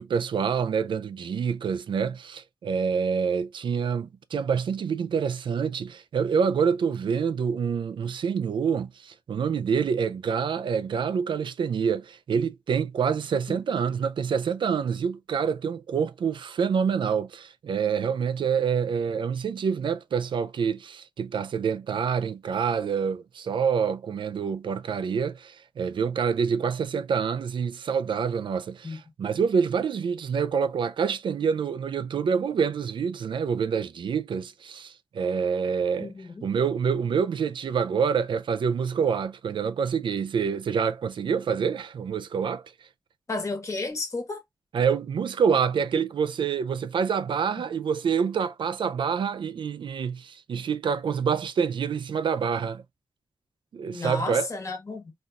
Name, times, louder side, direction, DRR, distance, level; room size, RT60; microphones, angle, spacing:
voice 1, 0.0-36.1 36.4-42.6 44.7-52.8 53.7-54.5, right 6 dB, 85° right, 0.4 m, -27 dB
voice 2, 36.0-36.5 43.3-44.4 53.9-55.1, left 3 dB, 40° left, 1.3 m, -32 dB
4.1 x 2.5 x 2.3 m
wide cardioid pair, 125°, 8 cm